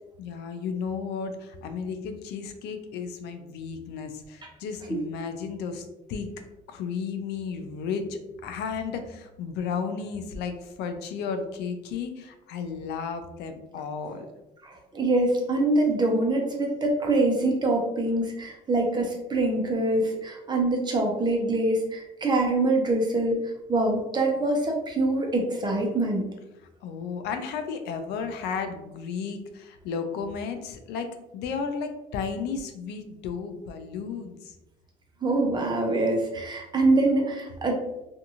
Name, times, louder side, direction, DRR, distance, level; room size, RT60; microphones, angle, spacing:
voice 1, 0.2-6.3 6.7-14.3 26.8-31.1 31.3-34.5, left 5 dB, 85° left, 7 dB, 0.4 m, -33 dB
voice 2, 14.6-23.4 23.7-26.3 35.2-37.8, right 2 dB, 25° right, 1 dB, 0.7 m, -24 dB
2.5 x 2.4 x 2.8 m, 0.94 s
cardioid pair, 110°, 17 cm